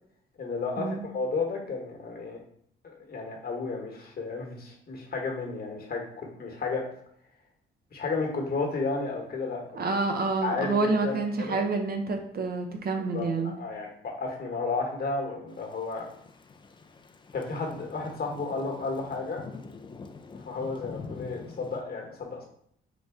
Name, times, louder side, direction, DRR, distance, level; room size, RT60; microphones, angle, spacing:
voice 1, 0.4-2.4 2.8-6.8 7.9-9.8 10.4-11.6 13.1-16.1 17.3-19.5 20.4-22.5, left 4 dB, 50° left, 1 dB, 1.1 m, -32 dB
voice 2, 9.7-13.6, right 3 dB, 50° right, 4 dB, 0.6 m, -28 dB
Thunder / Rain, 15.5-21.8, left 4 dB, 25° left, 0.4 m, -45 dB
4.0 x 2.2 x 3.5 m, 0.66 s
supercardioid pair, 70°, 21 cm